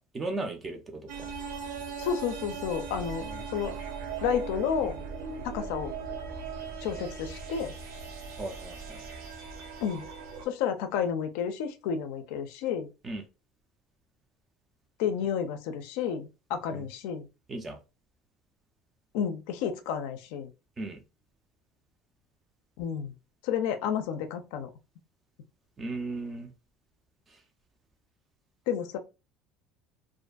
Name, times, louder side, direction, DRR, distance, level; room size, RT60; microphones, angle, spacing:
voice 1, 0.0-1.3 3.2-3.4 8.4-9.0 13.0-13.2 16.7-16.8 17.5-17.8 20.8-21.0 25.8-26.5, right 2 dB, 15° right, 0.4 m, -36 dB
sound 1, 1.1-10.5, right 5 dB, 65° right, 0.6 m, -39 dB
voice 2, 2.0-3.2 3.5-3.8 4.2-5.0 5.4-5.9 6.8-7.7 9.8-10.1 10.5-12.9 15.0-17.3 19.1-20.5 22.8-23.1 23.4-24.7 28.7-29.0, left 7 dB, 70° left, 0.4 m, -31 dB
2.5 x 2.5 x 2.2 m
cardioid pair, 180°, 0 cm